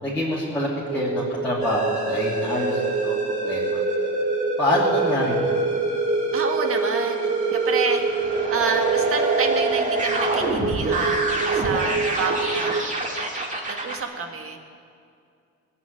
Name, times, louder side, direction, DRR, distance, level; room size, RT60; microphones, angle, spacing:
voice 1, 0.0-3.8 4.6-5.5, left 1 dB, 5° left, -10 dB, 2.9 m, -26 dB
sound 1, 0.8-12.8, right 5 dB, 65° right, 0.9 m, -28 dB
sound 2, 1.6-14.0, right 2 dB, 25° right, 2.0 m, -26 dB
voice 2, 6.3-8.0 8.5-13.0 13.6-14.6, right 5 dB, 50° right, 4 dB, 1.7 m, -28 dB
20.0 x 7.3 x 9.0 m, 2.4 s
cardioid pair, 145°, 29 cm